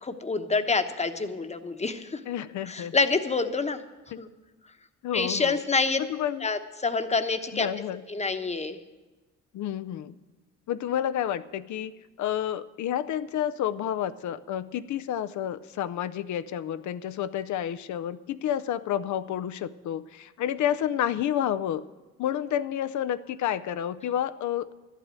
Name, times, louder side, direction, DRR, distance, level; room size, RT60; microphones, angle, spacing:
voice 1, 0.0-2.2 2.7-3.8 4.2-4.3 5.1-6.0 6.4-7.7 8.1-8.8, left 4 dB, 20° left, 9 dB, 1.0 m, -27 dB
voice 2, 2.3-3.0 4.1-4.2 5.0-5.6 6.1-6.4 7.5-8.0 9.5-10.1 10.7-11.9 12.2-21.8 22.2-24.7, left 10 dB, 70° left, 11 dB, 0.6 m, -30 dB
12.0 x 8.3 x 9.0 m, 1.2 s
cardioid pair, 90°, 30 cm